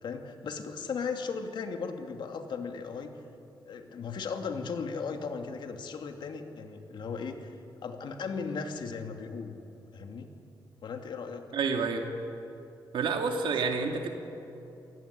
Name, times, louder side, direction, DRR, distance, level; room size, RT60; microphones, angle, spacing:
voice 1, 0.0-3.1 3.7-7.6 7.8-9.6 9.9-10.3 10.8-11.5, left 5 dB, 65° left, 5 dB, 2.4 m, -36 dB
voice 2, 11.5-12.0 12.9-14.1, right 5 dB, 80° right, 3 dB, 2.5 m, -29 dB
27.5 x 18.5 x 9.9 m, 2.8 s
wide cardioid pair, 135°, 8 cm